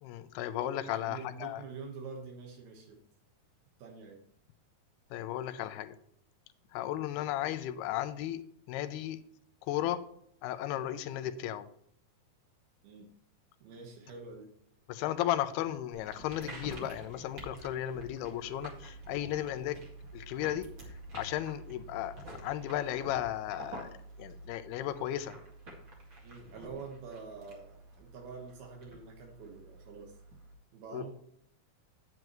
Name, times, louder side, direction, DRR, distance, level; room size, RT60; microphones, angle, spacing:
voice 1, 0.0-1.6 5.1-5.9 6.7-8.4 8.7-9.2 9.7-10.0 10.4-11.7 14.9-19.8 20.1-20.7 21.1-25.4 30.9-31.1, left 12 dB, 90° left, 11 dB, 2.7 m, -35 dB
voice 2, 0.9-3.0 3.8-4.2 12.8-13.1 13.6-14.5 26.2-30.2 30.7-31.1, right 5 dB, 75° right, 2 dB, 3.2 m, -46 dB
sound 1, 15.9-30.5, right 1 dB, 40° right, 2.3 m, -49 dB
9.5 x 9.0 x 3.1 m, 0.70 s
omnidirectional pair, 4.5 m